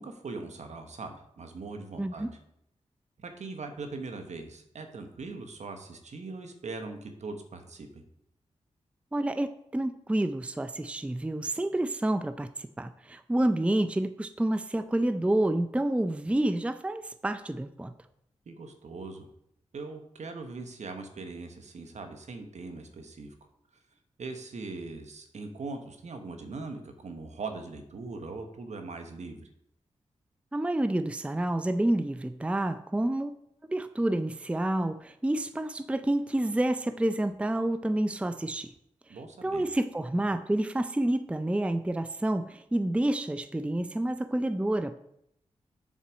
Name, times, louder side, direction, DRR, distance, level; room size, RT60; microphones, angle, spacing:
voice 1, 0.0-2.4 3.2-8.0 18.5-19.3 19.7-23.3 24.2-29.5 39.1-39.6, right 3 dB, 65° right, 6 dB, 1.2 m, -40 dB
voice 2, 2.0-2.3 9.1-17.9 30.5-33.3 33.7-38.7 39.4-45.0, right 1 dB, 10° right, 11 dB, 0.4 m, -29 dB
7.4 x 4.1 x 6.2 m, 0.76 s
cardioid pair, 45°, 13 cm